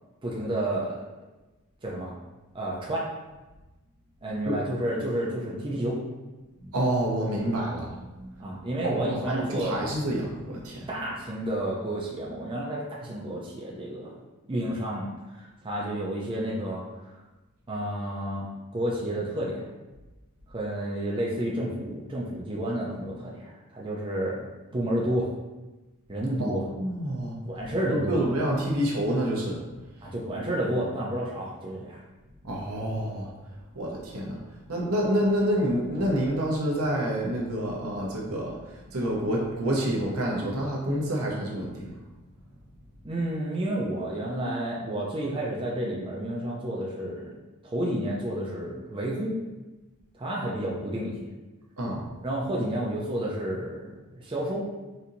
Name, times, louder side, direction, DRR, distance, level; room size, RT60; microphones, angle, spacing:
voice 1, 0.2-0.9 1.8-2.1 2.5-3.1 4.2-6.0 8.4-9.8 10.9-14.1 14.5-17.1 17.7-18.5 18.7-19.6 20.5-24.5 24.7-25.3 26.1-26.6 27.5-28.2 30.0-32.0 43.0-47.3 47.6-49.3 50.2-51.2 52.2-54.7, right 1 dB, 25° right, -4 dB, 0.5 m, -30 dB
voice 2, 6.7-8.6 8.8-10.9 26.4-27.4 27.9-29.6 32.4-33.3 33.8-34.4 34.7-38.6 38.9-41.9 51.8-52.0, right 1 dB, 75° right, -2 dB, 0.8 m, -28 dB
4.3 x 2.7 x 2.6 m, 1.1 s
head